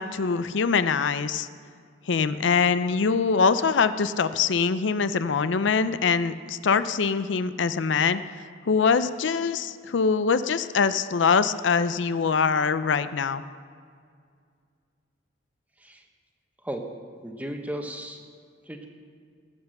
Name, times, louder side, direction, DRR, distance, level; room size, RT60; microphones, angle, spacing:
voice 1, 0.0-1.5 2.1-8.2 8.7-13.4, left 5 dB, 75° left, 13 dB, 0.5 m, -23 dB
voice 2, 17.2-18.2 18.6-18.9, right 1 dB, 10° right, 3 dB, 1.1 m, -35 dB
19.5 x 8.2 x 6.5 m, 2.2 s
head